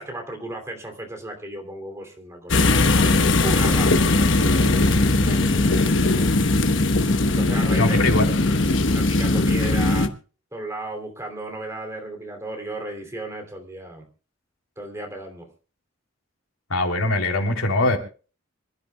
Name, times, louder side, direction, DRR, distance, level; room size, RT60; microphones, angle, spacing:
voice 1, 0.0-6.4 7.3-8.0 8.9-10.1 10.5-14.0 14.8-15.5, right 1 dB, 15° right, 3.0 m, -35 dB
sound 1, 2.5-10.1, left 2 dB, 60° left, 1.1 m, -19 dB
voice 2, 7.8-8.2 16.7-18.0, left 2 dB, 90° left, 3.2 m, -21 dB
25.5 x 13.0 x 2.3 m
head